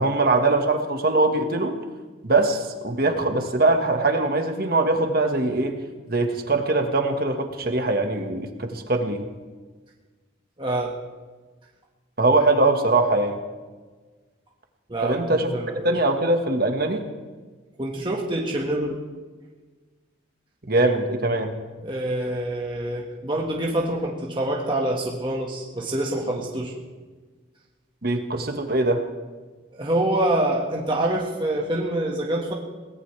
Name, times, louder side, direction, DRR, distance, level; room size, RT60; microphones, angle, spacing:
voice 1, 0.0-1.8 2.2-5.8 6.1-9.2 12.2-13.4 15.0-15.5 15.8-17.0 20.7-21.5 28.0-29.0, right 2 dB, 50° right, 4 dB, 1.7 m, -22 dB
voice 2, 10.6-10.9 14.9-15.9 17.8-19.0 21.8-26.7 29.7-32.5, right 1 dB, 25° right, -2 dB, 1.7 m, -26 dB
23.0 x 18.5 x 3.4 m, 1.4 s
head